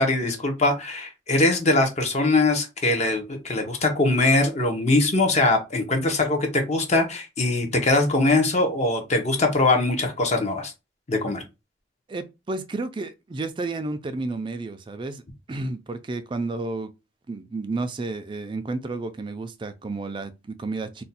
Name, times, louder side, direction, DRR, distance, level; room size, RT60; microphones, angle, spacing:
voice 1, 0.0-10.7 11.1-11.4, left 2 dB, 35° left, 0.6 m, -22 dB
voice 2, 12.1-15.2 15.5-16.9 17.3-21.0, right 3 dB, 25° right, 0.3 m, -31 dB
2.5 x 2.1 x 4.0 m
head